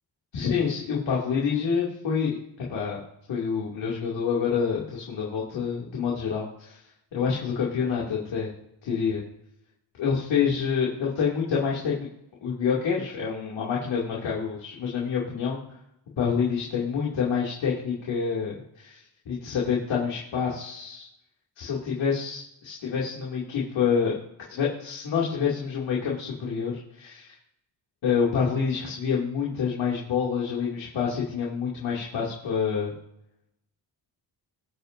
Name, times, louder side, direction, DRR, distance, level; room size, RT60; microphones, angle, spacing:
voice 1, 0.3-2.4 2.7-3.0 3.3-6.8 7.1-8.5 8.8-9.2 10.0-11.9 12.4-15.6 16.2-21.1 21.6-24.2 24.5-27.3 28.0-32.9, left 6 dB, 90° left, -4 dB, 2.6 m, -27 dB
23.0 x 7.8 x 2.6 m, 0.81 s
wide cardioid pair, 155°, 44 cm